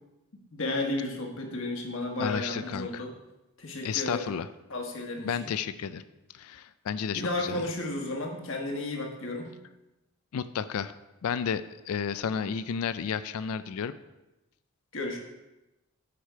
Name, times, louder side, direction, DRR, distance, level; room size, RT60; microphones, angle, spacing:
voice 1, 0.5-3.1 3.6-4.3 4.7-5.4 7.1-9.5 14.9-15.2, left 2 dB, 60° left, 2 dB, 1.3 m, -33 dB
voice 2, 2.2-3.0 3.8-4.5 5.2-6.0 6.3-7.6 10.3-10.9 11.2-13.9, left 7 dB, 80° left, 14 dB, 0.4 m, -32 dB
8.8 x 5.0 x 4.5 m, 0.99 s
head